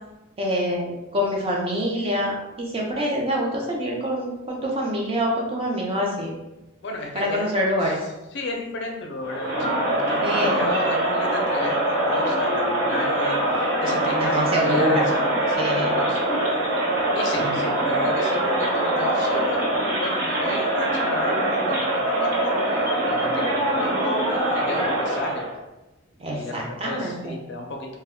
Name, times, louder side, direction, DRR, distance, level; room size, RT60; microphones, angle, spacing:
voice 1, 0.4-6.3 7.1-8.0 10.2-10.6 14.2-15.0 15.6-16.0 17.3-17.6 26.2-27.4, equal, 25° right, -2 dB, 0.4 m, -25 dB
voice 2, 6.8-7.5 7.8-7.9 8.3-16.4 17.1-22.6 23.1-25.5 26.3-28.0, left 1 dB, 55° left, 2 dB, 0.4 m, -32 dB
Crowd, 9.2-25.5, right 1 dB, 55° right, 1.2 m, -23 dB
2.1 x 2.1 x 3.5 m, 0.99 s
head